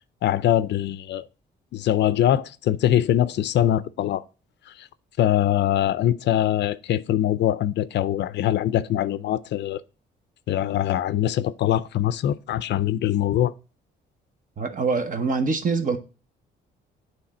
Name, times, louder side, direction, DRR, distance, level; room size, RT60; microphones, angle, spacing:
voice 1, 0.2-1.3 1.7-4.2 4.8-4.9 5.2-9.8 10.5-13.5, left 12 dB, 65° left, 0.4 m, -23 dB
voice 2, 14.6-16.0, right 4 dB, 40° right, 0.9 m, -24 dB
8.5 x 3.2 x 4.2 m
cardioid pair, 90°, 20 cm